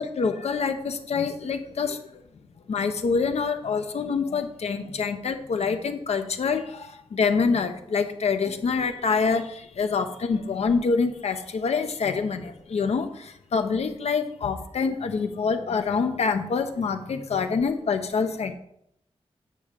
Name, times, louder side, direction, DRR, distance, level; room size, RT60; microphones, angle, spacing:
voice 1, 0.0-2.0 2.7-18.5, left 5 dB, 80° left, 8 dB, 0.8 m, -26 dB
9.2 x 3.7 x 6.7 m, 0.75 s
wide cardioid pair, 120°, 11 cm